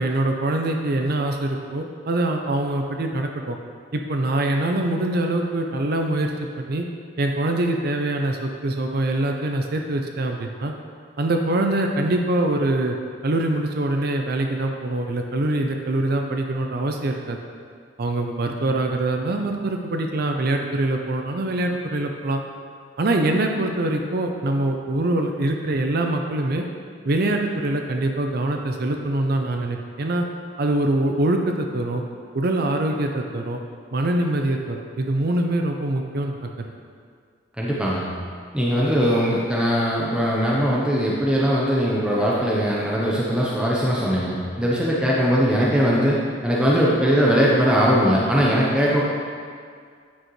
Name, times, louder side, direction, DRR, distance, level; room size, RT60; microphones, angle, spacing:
voice 1, 0.0-3.6 3.9-6.3 6.6-6.9 7.2-10.7 11.2-13.0 13.2-17.4 18.0-22.4 23.0-26.6 27.0-30.3 30.6-32.0 32.3-33.6 33.9-36.7, right 1 dB, 55° right, 3 dB, 0.6 m, -24 dB
voice 2, 37.6-38.1 38.5-46.2 46.4-49.0, equal, 5° right, -6 dB, 0.8 m, -20 dB
9.3 x 6.4 x 3.2 m, 2.1 s
head